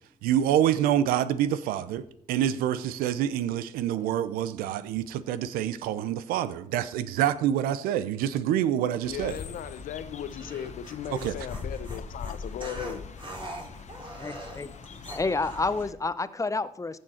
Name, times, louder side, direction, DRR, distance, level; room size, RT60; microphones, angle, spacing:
voice 1, 0.2-9.4 11.2-11.3, right 11 dB, 80° right, 0.6 m, -27 dB
sound 1, 9.0-15.9, left 5 dB, 50° left, 1.1 m, -41 dB
voice 2, 9.1-13.1, left 10 dB, 70° left, 0.8 m, -37 dB
sound 2, 10.3-15.8, equal, 35° right, 3.4 m, -42 dB
voice 3, 14.2-14.7 15.1-17.0, left 3 dB, 20° left, 0.7 m, -29 dB
14.5 x 6.5 x 4.3 m
supercardioid pair, 50°, 15 cm